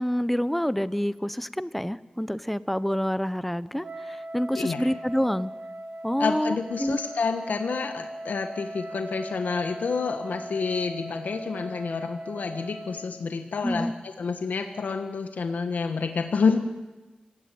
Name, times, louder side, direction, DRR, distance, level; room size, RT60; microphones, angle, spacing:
voice 1, 0.0-5.5 6.0-7.0 13.6-13.9, equal, 5° left, 16 dB, 0.8 m, -27 dB
Wind instrument woodwind instrument, 3.8-13.2, right 1 dB, 65° right, 2.9 m, -39 dB
voice 2, 4.5-4.9 6.2-16.6, left 5 dB, 85° left, 6 dB, 1.6 m, -28 dB
26.0 x 17.0 x 9.5 m, 1.2 s
wide cardioid pair, 100°, 3 cm